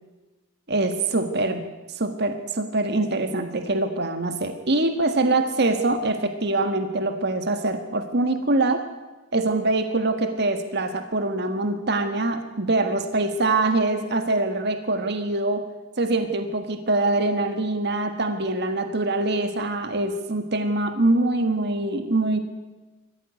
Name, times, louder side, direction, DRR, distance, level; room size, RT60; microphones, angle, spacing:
voice 1, 0.7-1.6 1.9-8.8 9.3-15.6 16.0-22.4, right 2 dB, 50° right, 7 dB, 1.6 m, -24 dB
24.5 x 15.0 x 9.6 m, 1.2 s
head